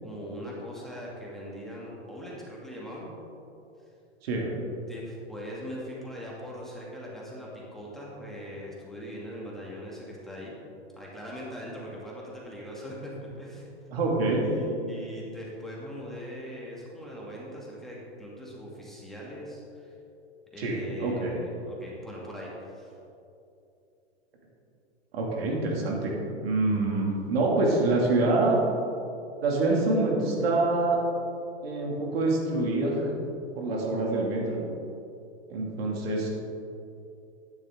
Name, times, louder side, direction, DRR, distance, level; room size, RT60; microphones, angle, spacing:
voice 1, 0.0-3.1 4.9-10.6 11.0-13.7 14.4-19.9 20.5-23.0, equal, ahead, -5 dB, 2.6 m, -41 dB
voice 2, 13.9-14.4 20.6-21.4 25.1-26.1 26.4-28.6 29.4-31.0 31.6-33.1 33.6-34.6 35.5-36.3, right 2 dB, 60° right, -1 dB, 2.6 m, -26 dB
12.0 x 10.5 x 3.8 m, 2.7 s
hypercardioid pair, 110°, 34 cm